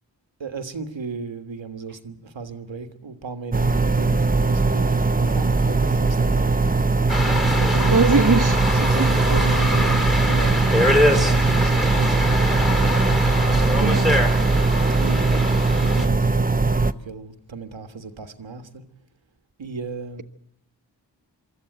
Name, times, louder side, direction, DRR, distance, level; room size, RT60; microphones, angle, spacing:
voice 1, 0.4-6.8 7.6-8.3 8.7-12.3 13.5-14.2 15.0-18.8 19.6-20.2, right 4 dB, 85° right, 1.7 m, -35 dB
sound 1, 3.5-16.9, right 3 dB, 20° right, 0.8 m, -20 dB
sound 2, 7.1-16.1, left 1 dB, ahead, 3.2 m, -24 dB
voice 2, 7.9-8.6 9.0-9.1 13.8-14.2, right 4 dB, 45° right, 1.4 m, -20 dB
sound 3, 17.0-18.7, equal, 40° left, 7.7 m, -47 dB
24.0 x 14.0 x 9.1 m
wide cardioid pair, 55°, 44 cm